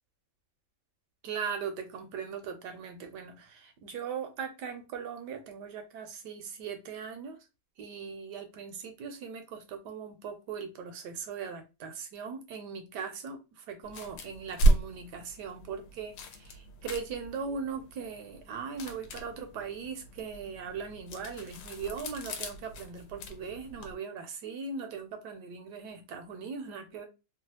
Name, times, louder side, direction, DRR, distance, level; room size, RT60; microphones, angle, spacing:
voice 1, 1.2-7.4 7.8-27.1, right 6 dB, 70° right, 1.1 m, -39 dB
sound 1, 13.8-23.9, right 2 dB, 70° left, 1.1 m, -33 dB
3.1 x 2.3 x 2.7 m
omnidirectional pair, 2.1 m